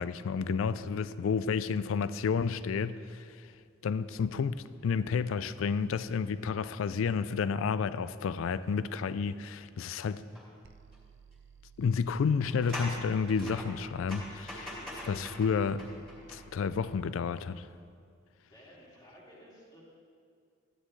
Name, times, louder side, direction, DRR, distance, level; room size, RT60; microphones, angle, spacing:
voice 1, 0.0-3.4 3.8-10.2 11.8-14.8 15.0-15.9 16.3-17.7, left 5 dB, 75° left, 0.4 m, -31 dB
sound 1, 10.3-10.5 10.9-11.0 12.3-16.9 17.3-17.4, left 1 dB, ahead, 2.8 m, -43 dB
sound 2, 10.6-17.0, right 7 dB, 65° right, 0.5 m, -56 dB
voice 2, 18.5-19.8, equal, 20° left, 2.3 m, -54 dB
13.5 x 9.9 x 3.2 m
head